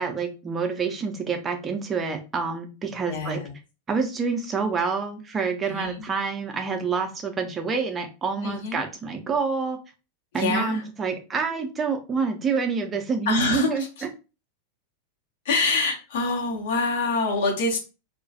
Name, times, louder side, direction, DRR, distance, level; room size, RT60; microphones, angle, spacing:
voice 1, 0.0-3.4 3.9-9.8 10.3-13.8, right 5 dB, 20° right, 4 dB, 0.5 m, -27 dB
voice 2, 3.1-3.5 5.6-6.1 8.4-8.8 10.4-10.8 13.3-13.7 15.4-17.8, left 3 dB, 55° left, 0 dB, 0.7 m, -25 dB
2.2 x 2.1 x 2.6 m, 0.31 s
figure-of-eight pair, 90°, 0 cm